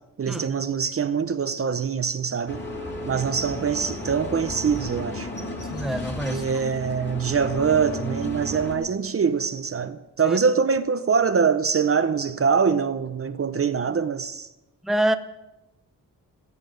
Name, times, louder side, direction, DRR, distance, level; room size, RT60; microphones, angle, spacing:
voice 1, 0.2-2.6 3.0-5.3 6.2-14.5, right 6 dB, 40° right, 0.7 m, -24 dB
sound 1, 2.5-8.8, left 1 dB, 30° left, 2.5 m, -33 dB
voice 2, 5.7-6.4 10.3-10.4 14.8-15.2, right 1 dB, ahead, 0.8 m, -25 dB
15.0 x 14.5 x 5.2 m
wide cardioid pair, 110°, 34 cm